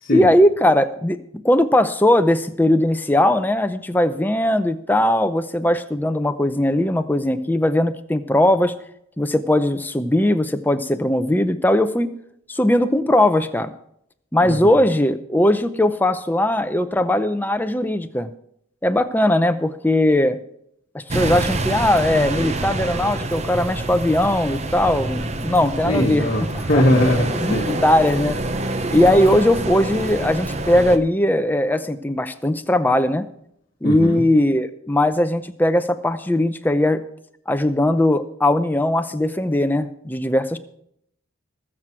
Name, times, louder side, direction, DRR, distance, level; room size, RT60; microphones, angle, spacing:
voice 1, 0.1-1.2 1.4-8.7 9.2-12.1 12.5-13.7 14.3-18.3 18.8-20.4 20.9-26.3 26.7-26.8 27.3-28.4 28.9-33.3 33.8-37.0 37.5-40.6, left 1 dB, 10° left, 9 dB, 0.6 m, -19 dB
voice 2, 14.4-14.8 25.8-27.7 33.8-34.2, left 1 dB, 45° left, -2 dB, 1.4 m, -20 dB
sound 1, 21.1-31.0, right 2 dB, 30° right, 0.7 m, -26 dB
20.0 x 7.6 x 4.6 m, 0.73 s
head